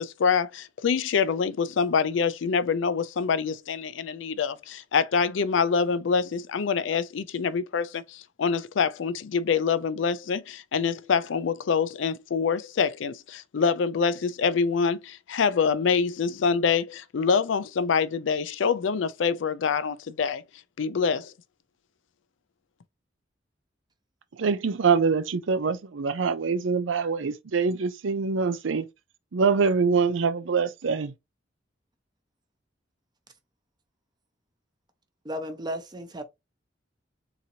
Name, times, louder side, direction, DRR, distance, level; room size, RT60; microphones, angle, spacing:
voice 1, 0.0-20.4 20.8-21.3, left 5 dB, 75° left, 0.4 m, -25 dB
voice 2, 24.4-28.9 29.3-31.1, right 5 dB, 85° right, 0.5 m, -24 dB
voice 3, 35.2-36.2, equal, 20° right, 0.8 m, -34 dB
3.9 x 2.9 x 2.8 m
head